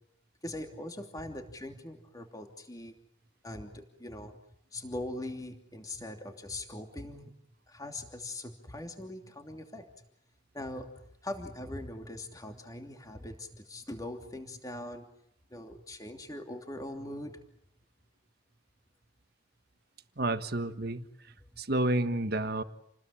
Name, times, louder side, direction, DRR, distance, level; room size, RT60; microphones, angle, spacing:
voice 1, 0.4-2.9 3.4-7.3 7.7-10.1 10.5-15.1 15.5-17.4 21.4-21.6, left 1 dB, 20° left, 4 dB, 2.9 m, -41 dB
voice 2, 20.2-21.0 21.6-22.6, right 2 dB, 55° right, 9 dB, 1.5 m, -30 dB
29.0 x 20.5 x 8.7 m, 0.74 s
head